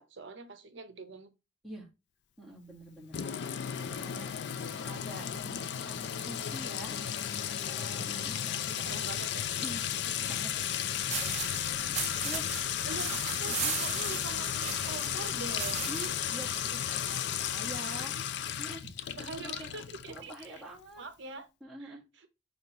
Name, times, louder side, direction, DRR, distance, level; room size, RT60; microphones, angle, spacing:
voice 1, 0.0-1.3 3.7-4.8 8.0-8.4 8.9-9.5 11.6-12.2 12.5-15.9 16.7-17.6 17.9-18.1 18.6-18.8 19.1-20.6 21.0-21.5 21.8-21.9, right 3 dB, 60° right, 0.8 m, -45 dB
voice 2, 2.4-3.2 3.8-4.3 4.8-7.0 7.7-9.0 9.6-10.7 11.2-12.8 13.5-13.8 15.9-16.5 16.9-17.0 17.4-18.1 18.6-18.9 19.2-19.7 20.1-21.0 21.6-22.0, right 1 dB, ahead, 1.6 m, -46 dB
Sink (filling or washing) / Trickle dribble / Fill (with liquid), 3.1-20.6, left 9 dB, 55° left, 0.3 m, -34 dB
sound 1, 11.1-16.2, right 8 dB, 35° right, 0.5 m, -38 dB
5.3 x 3.4 x 2.9 m
head